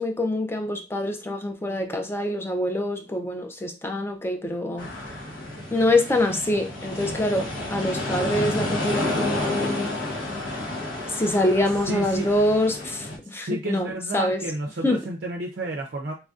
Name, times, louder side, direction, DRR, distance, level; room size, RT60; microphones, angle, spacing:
voice 1, 0.0-4.9 5.7-9.9 11.1-14.4 14.8-15.0, left 1 dB, 10° left, 0.4 m, -25 dB
sound 1, 4.8-13.2, left 1 dB, 85° left, 1.0 m, -30 dB
voice 2, 11.9-12.3 13.4-16.1, right 2 dB, 50° right, 0.4 m, -30 dB
4.1 x 2.5 x 2.3 m
head